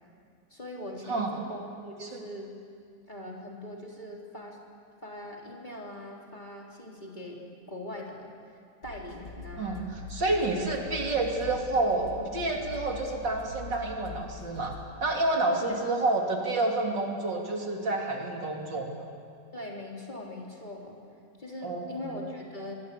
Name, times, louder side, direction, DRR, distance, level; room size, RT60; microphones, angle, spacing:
voice 1, 0.5-2.5 3.1-4.6 5.0-7.4 7.7-10.0 10.4-11.2 11.5-11.7 12.2-12.3 15.6-15.8 19.5-21.0 21.4-22.8, left 1 dB, 25° left, -2 dB, 3.6 m, -41 dB
sound 1, 8.8-14.8, left 5 dB, 60° left, 3.2 m, -43 dB
voice 2, 9.6-18.9 21.6-22.1, right 2 dB, 65° right, 1 dB, 3.5 m, -29 dB
25.0 x 24.0 x 8.4 m, 2.3 s
omnidirectional pair, 2.1 m